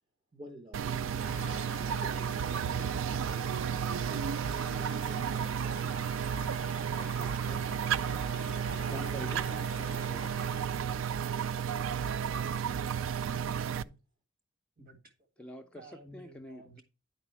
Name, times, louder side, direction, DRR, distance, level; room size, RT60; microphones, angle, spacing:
voice 1, 0.3-3.5, right 1 dB, 25° right, 0.7 m, -51 dB
sound 1, 0.7-13.8, right 8 dB, 75° right, 0.3 m, -32 dB
sound 2, 1.2-10.6, left 6 dB, 65° left, 0.5 m, -48 dB
voice 2, 6.8-7.6 8.5-10.5 15.4-16.8, equal, 5° left, 0.5 m, -47 dB
voice 3, 13.0-14.0 14.8-15.1 15.7-16.8, right 1 dB, 50° right, 1.7 m, -53 dB
9.9 x 4.2 x 4.5 m
head